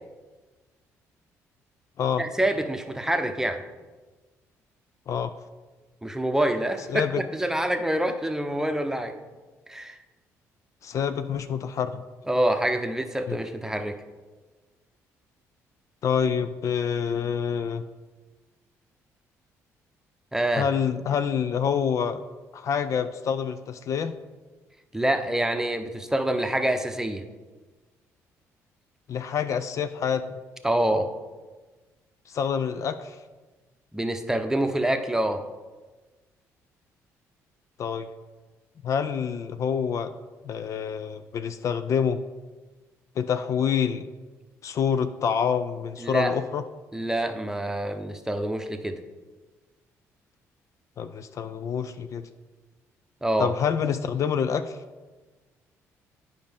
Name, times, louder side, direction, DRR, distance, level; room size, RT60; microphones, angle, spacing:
voice 1, 2.2-3.6 6.0-9.1 9.7-10.0 12.3-13.9 20.3-20.7 24.9-27.2 30.6-31.1 33.9-35.4 46.0-46.3 46.9-49.0 53.2-53.5, right 1 dB, 10° right, 6 dB, 0.7 m, -26 dB
voice 2, 6.9-7.2 10.8-12.0 13.3-13.4 16.0-17.8 20.6-22.2 22.5-24.2 29.1-30.4 32.3-33.1 37.8-38.1 38.8-40.1 40.4-42.2 43.2-44.0 44.6-46.6 51.0-52.3 53.4-54.8, left 7 dB, 55° left, 10 dB, 0.4 m, -27 dB
9.3 x 5.2 x 3.5 m, 1.3 s
supercardioid pair, 75°, 6 cm